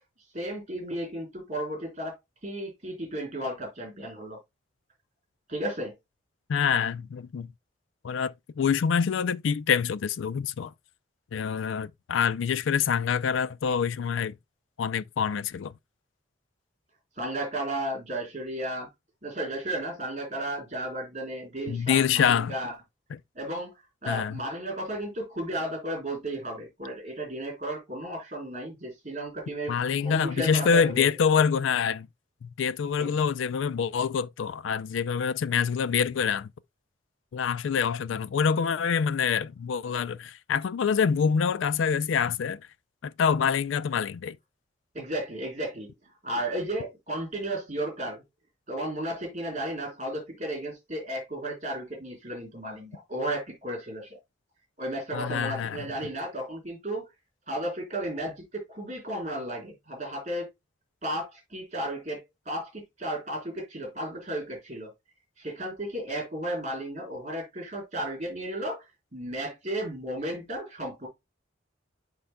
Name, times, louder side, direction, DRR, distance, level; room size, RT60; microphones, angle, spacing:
voice 1, 0.3-2.2 2.4-4.4 5.5-5.9 17.2-18.9 19.2-22.7 23.3-23.7 24.0-29.7 30.0-31.1 33.0-33.2 44.9-45.9 46.2-48.2 48.7-54.2 54.8-57.1 57.5-60.5 61.0-64.9 65.4-68.9 69.1-71.1, right 1 dB, 35° right, 3.8 m, -34 dB
voice 2, 6.5-7.5 8.0-10.7 11.3-14.3 14.8-15.7 21.7-22.5 23.1-23.2 24.1-24.4 29.7-32.1 32.4-36.5 37.3-42.6 43.0-44.4 55.1-55.9, left 6 dB, 75° left, 0.4 m, -26 dB
11.5 x 3.8 x 2.2 m
head